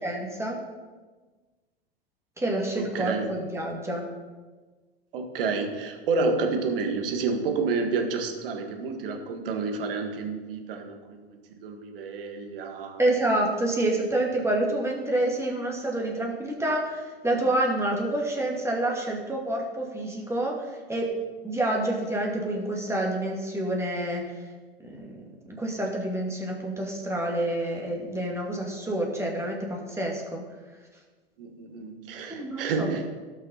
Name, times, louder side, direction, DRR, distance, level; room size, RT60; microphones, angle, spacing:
voice 1, 0.0-0.6 2.4-4.1 13.0-21.1 21.4-24.2 24.8-25.2 25.5-30.4 32.3-32.9, right 1 dB, 10° right, -1 dB, 2.5 m, -28 dB
voice 2, 2.8-3.3 5.1-11.3 11.6-13.0 31.4-33.1, right 4 dB, 65° right, 5 dB, 1.7 m, -29 dB
17.5 x 6.0 x 4.2 m, 1.4 s
figure-of-eight pair, 90°, 30 cm